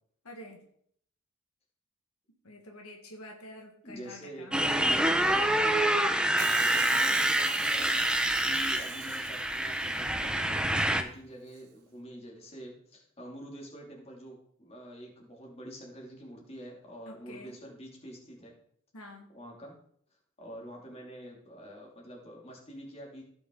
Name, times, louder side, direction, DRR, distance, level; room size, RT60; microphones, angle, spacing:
voice 1, 0.2-0.6 2.4-4.6 17.0-17.6 18.9-19.3, left 1 dB, 75° left, 2 dB, 1.7 m, -47 dB
voice 2, 3.8-4.5 5.3-8.1 8.4-18.5 19.3-19.7 20.4-23.2, equal, 30° left, -1 dB, 2.7 m, -46 dB
Motorcycle, 4.5-11.0, right 1 dB, 5° right, 0.7 m, -27 dB
Hiss, 6.4-10.5 11.5-11.6, right 12 dB, 85° right, 0.8 m, -43 dB
16.0 x 6.0 x 3.9 m, 0.66 s
head